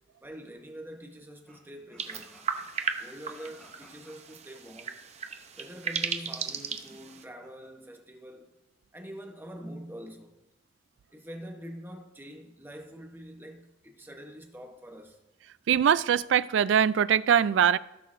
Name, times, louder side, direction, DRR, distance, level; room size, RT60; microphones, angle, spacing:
voice 1, 0.2-2.3 3.0-5.0 5.6-8.5 8.9-10.3 11.1-15.2, equal, 10° right, 0.9 m, -45 dB
sound 1, 1.5-4.4 6.3-7.7, equal, 5° left, 2.5 m, -56 dB
sound 2, 2.0-7.2, right 6 dB, 35° right, 0.6 m, -36 dB
voice 2, 15.7-17.8, right 8 dB, 80° right, 0.3 m, -22 dB
17.0 x 6.5 x 2.6 m
head